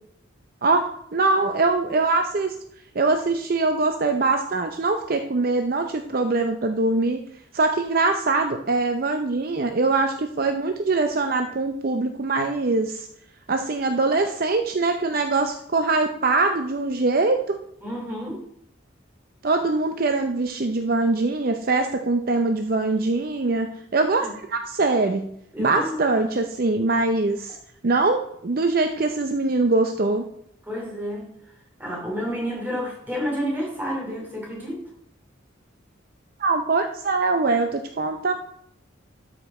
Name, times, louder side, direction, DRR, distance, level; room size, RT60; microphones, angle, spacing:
voice 1, 0.6-2.6 2.9-7.2 7.5-13.1 13.5-17.6 19.4-25.3 25.6-27.6 27.8-30.2 36.4-38.3, right 3 dB, 45° right, 6 dB, 0.5 m, -23 dB
voice 2, 17.8-18.4 24.2-24.3 25.5-26.0 30.7-31.3 31.8-34.8, equal, 10° right, -2 dB, 2.8 m, -30 dB
12.5 x 5.1 x 4.2 m, 0.73 s
head